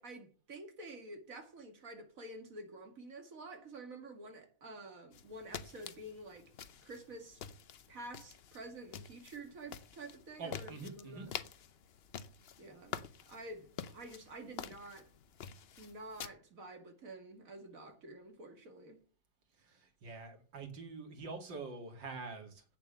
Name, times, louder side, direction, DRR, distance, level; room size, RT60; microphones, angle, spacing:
voice 1, 0.0-6.5 6.8-7.4 7.9-11.3 12.6-15.1 15.8-19.0, right 2 dB, 50° right, 2.4 m, -49 dB
sound 1, 5.1-16.3, left 7 dB, 60° left, 0.6 m, -48 dB
voice 2, 10.4-11.3 19.6-22.6, right 4 dB, 90° right, 2.9 m, -45 dB
8.8 x 7.3 x 6.9 m
omnidirectional pair, 1.9 m